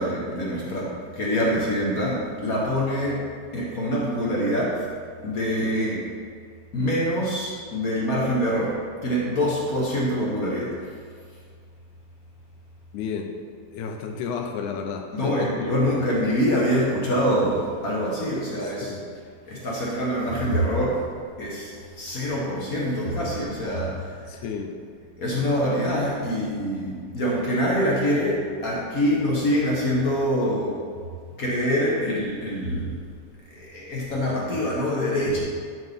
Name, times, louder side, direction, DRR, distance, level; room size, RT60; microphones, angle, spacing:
voice 1, 0.0-3.2 3.5-4.9 5.2-6.0 6.7-8.8 9.0-10.7 15.1-19.0 19.5-21.0 21.4-24.1 25.2-30.8 31.4-33.0 33.5-35.4, equal, 50° left, -5 dB, 1.0 m, -25 dB
voice 2, 12.9-13.3 13.7-15.7 18.8-19.1 24.3-24.8, left 6 dB, 85° left, 4 dB, 2.2 m, -31 dB
11.0 x 5.5 x 3.6 m, 2.1 s
omnidirectional pair, 3.4 m